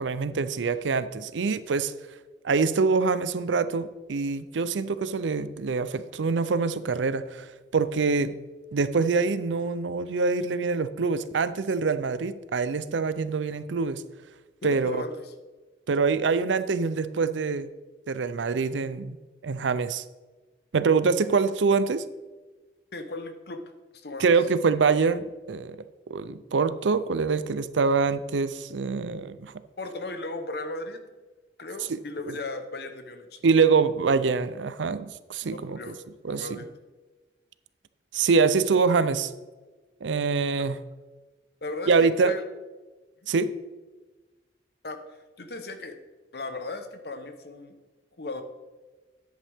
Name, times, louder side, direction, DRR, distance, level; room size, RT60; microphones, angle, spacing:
voice 1, 0.0-1.9 2.4-8.3 8.7-14.0 14.6-15.0 15.9-17.7 18.1-19.2 19.4-20.0 20.7-22.0 24.2-25.8 26.1-29.5 31.9-32.0 32.3-32.4 33.4-35.9 36.2-36.6 38.1-39.3 40.0-40.8 41.9-42.3 43.3-43.5, right 4 dB, 90° right, 14 dB, 0.5 m, -25 dB
voice 2, 14.7-15.3 22.9-23.6 23.9-24.3 29.8-31.0 31.6-33.5 35.5-36.0 36.3-36.7 41.6-42.4 43.2-43.3 44.8-45.0 45.4-46.0 46.3-47.8 48.2-48.4, left 2 dB, 60° left, 8 dB, 0.9 m, -36 dB
10.0 x 8.3 x 3.5 m, 1.2 s
head